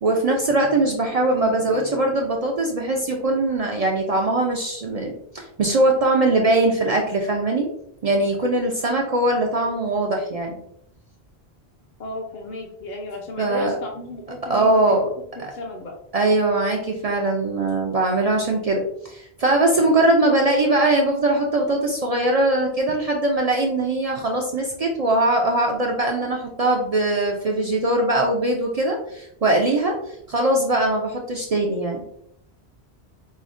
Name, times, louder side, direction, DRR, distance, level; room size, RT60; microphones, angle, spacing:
voice 1, 0.0-7.7 8.0-10.6 13.4-13.7 14.5-15.1 15.4-15.5 16.1-30.0 30.3-32.0, right 2 dB, 55° right, 0 dB, 0.4 m, -21 dB
voice 2, 12.0-14.9 15.5-16.0, left 1 dB, 55° left, 1 dB, 0.6 m, -34 dB
5.0 x 2.1 x 2.4 m, 0.75 s
omnidirectional pair, 1.1 m